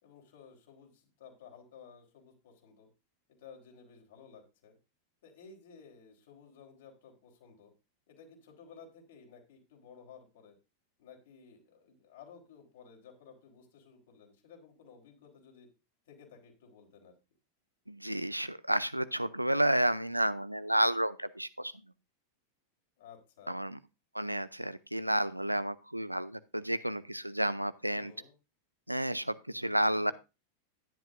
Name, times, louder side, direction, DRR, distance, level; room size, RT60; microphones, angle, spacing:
voice 1, 0.0-2.9 3.3-4.7 5.2-7.7 8.1-10.6 11.0-15.7 16.1-17.1 23.0-23.6 27.9-28.3, left 6 dB, 55° left, 2 dB, 4.0 m, -55 dB
voice 2, 17.9-21.7 23.5-23.8 24.1-28.1 28.9-30.1, right 1 dB, 90° right, 16 dB, 0.5 m, -31 dB
12.0 x 11.0 x 2.6 m, 0.28 s
figure-of-eight pair, 90°, 0 cm